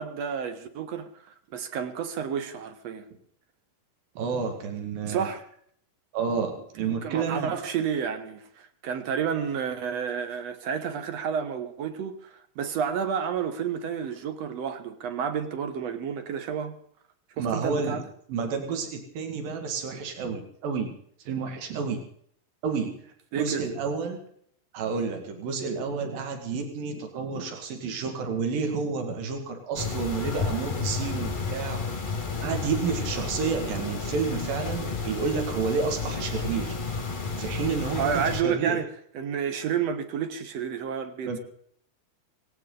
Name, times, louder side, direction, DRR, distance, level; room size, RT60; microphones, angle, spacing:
voice 1, 0.0-3.1 5.0-5.4 6.8-16.8 17.4-18.1 23.3-23.7 38.0-41.4, right 7 dB, 60° right, 2.1 m, -30 dB
voice 2, 4.2-5.3 6.1-7.5 17.4-18.0 18.3-20.9 21.3-22.0 22.6-22.9 23.3-24.2 24.7-31.8 32.4-36.8 37.4-38.8 41.2-41.4, right 5 dB, 80° right, 3.9 m, -30 dB
sound 1, 29.7-38.4, left 4 dB, 25° left, 1.1 m, -32 dB
19.0 x 18.0 x 4.0 m
omnidirectional pair, 4.0 m